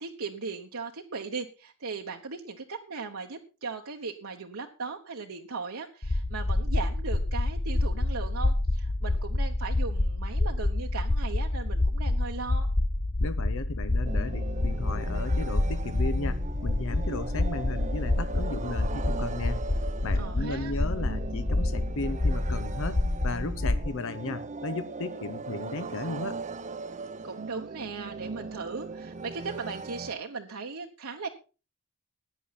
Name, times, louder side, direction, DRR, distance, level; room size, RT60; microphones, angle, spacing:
voice 1, 0.0-12.7 20.1-20.7 27.2-31.3, right 4 dB, 65° right, 2 dB, 1.1 m, -38 dB
sound 1, 6.0-23.9, left 2 dB, 25° left, 0.6 m, -28 dB
voice 2, 13.2-19.6 20.0-26.4, left 3 dB, 65° left, 12 dB, 0.7 m, -35 dB
sound 2, 14.0-30.1, right 4 dB, 35° right, 0.7 m, -39 dB
15.5 x 10.0 x 4.1 m, 0.33 s
head